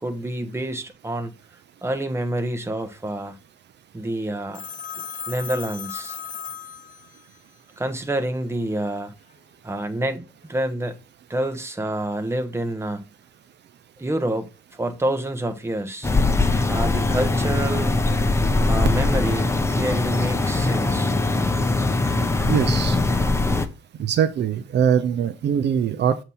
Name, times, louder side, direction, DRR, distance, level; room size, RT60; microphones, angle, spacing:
voice 1, 0.0-1.3 1.8-3.4 3.9-4.6 5.3-6.2 7.8-9.1 9.6-11.0 11.3-13.0 14.0-14.5 14.8-16.1 16.7-18.0 18.7-21.1, right 1 dB, 15° right, 1.1 m, -27 dB
Telephone, 4.5-7.4, left 8 dB, 40° left, 0.7 m, -35 dB
sound 1, 16.0-23.7, left 2 dB, 15° left, 0.8 m, -21 dB
voice 2, 22.5-23.0 24.0-26.2, right 8 dB, 60° right, 0.6 m, -22 dB
7.9 x 3.0 x 5.5 m
cardioid pair, 90°, 20 cm